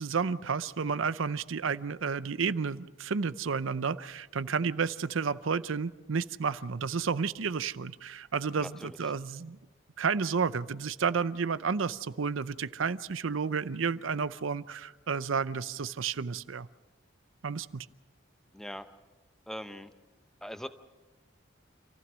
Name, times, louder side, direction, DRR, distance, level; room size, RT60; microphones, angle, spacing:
voice 1, 0.0-9.6 10.0-16.7 17.4-17.9, right 5 dB, 90° right, 15 dB, 0.6 m, -31 dB
voice 2, 8.6-9.0 18.5-18.9 19.5-19.9 20.4-20.7, equal, ahead, 9 dB, 0.7 m, -41 dB
27.5 x 15.5 x 6.2 m, 1.2 s
head